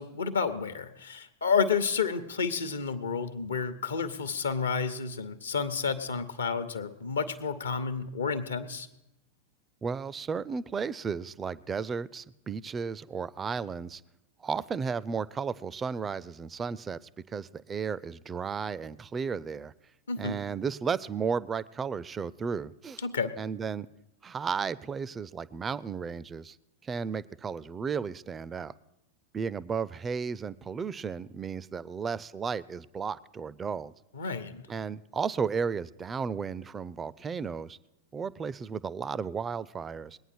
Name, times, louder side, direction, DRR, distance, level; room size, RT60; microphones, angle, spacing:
voice 1, 0.0-8.9 20.1-20.4 23.0-23.3 34.1-34.7, left 5 dB, 70° left, 10 dB, 0.9 m, -30 dB
voice 2, 9.8-14.0 14.4-19.7 20.2-23.0 23.4-23.9 24.2-26.6 26.8-28.7 29.3-33.9 34.7-37.8 38.1-40.2, right 6 dB, 20° right, 20 dB, 0.4 m, -34 dB
21.0 x 9.1 x 4.4 m, 0.92 s
figure-of-eight pair, 90°, 0 cm